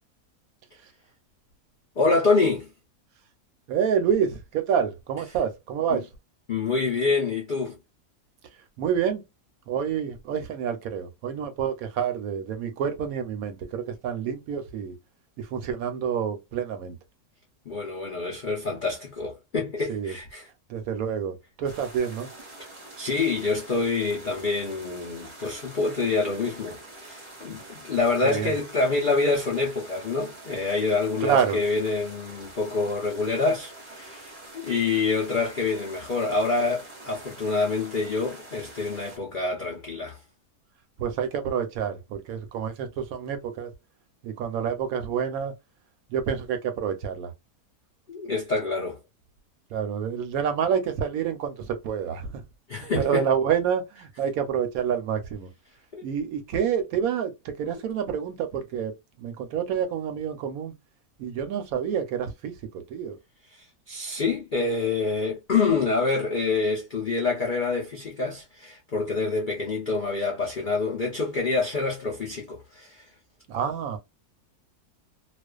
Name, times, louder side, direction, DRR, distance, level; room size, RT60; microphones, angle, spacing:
voice 1, 2.0-2.7 5.9-6.0 6.5-7.8 17.7-20.5 23.0-40.2 48.1-49.0 52.7-53.3 55.9-56.1 63.5-73.0, left 3 dB, 80° left, 0.4 m, -26 dB
voice 2, 3.7-6.1 8.8-9.2 9.7-14.9 15.4-17.0 19.9-20.2 20.7-22.3 28.2-28.5 31.2-31.6 41.0-43.7 44.2-45.5 46.1-47.3 49.7-52.3 52.8-55.5 56.0-60.7 61.2-63.2 73.5-74.0, right 8 dB, 70° right, 0.9 m, -28 dB
sound 1, 21.6-39.2, right 2 dB, 35° right, 0.5 m, -45 dB
2.4 x 2.2 x 2.2 m
omnidirectional pair, 1.7 m